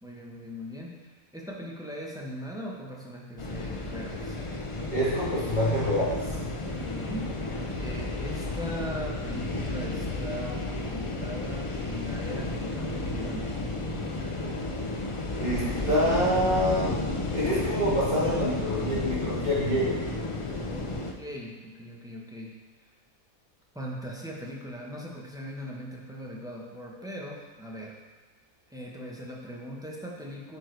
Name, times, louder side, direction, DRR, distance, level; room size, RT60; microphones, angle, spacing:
voice 1, 0.0-4.4 6.7-13.5 20.7-20.9 21.2-22.6 23.7-28.0 28.7-30.6, equal, 5° right, -3 dB, 0.9 m, -39 dB
sound 1, 3.4-21.1, left 2 dB, 55° left, 0.3 m, -32 dB
voice 2, 4.9-6.2 15.4-17.0 17.3-20.0, equal, 30° right, -9 dB, 2.7 m, -26 dB
9.5 x 4.8 x 4.6 m, 1.3 s
omnidirectional pair, 1.6 m